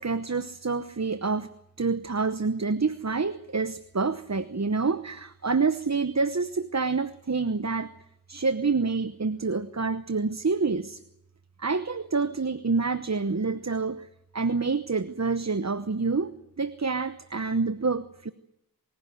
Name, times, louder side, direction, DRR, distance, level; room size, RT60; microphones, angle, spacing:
voice 1, 0.0-1.5 1.8-7.9 8.3-11.0 11.6-14.1 14.3-16.3 16.6-18.3, right 4 dB, 45° right, 13 dB, 1.0 m, -27 dB
27.5 x 16.5 x 9.5 m, 0.82 s
wide cardioid pair, 45°, 37 cm